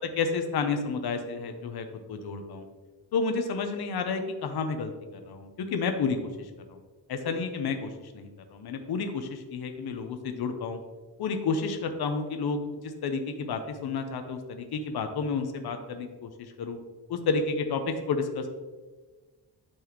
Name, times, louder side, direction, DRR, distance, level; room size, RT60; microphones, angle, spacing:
voice 1, 0.0-2.7 3.1-6.8 7.1-10.8 11.2-16.8 17.1-18.5, left 4 dB, 65° left, 6 dB, 0.8 m, -31 dB
11.5 x 4.1 x 3.0 m, 1.3 s
wide cardioid pair, 160°, 41 cm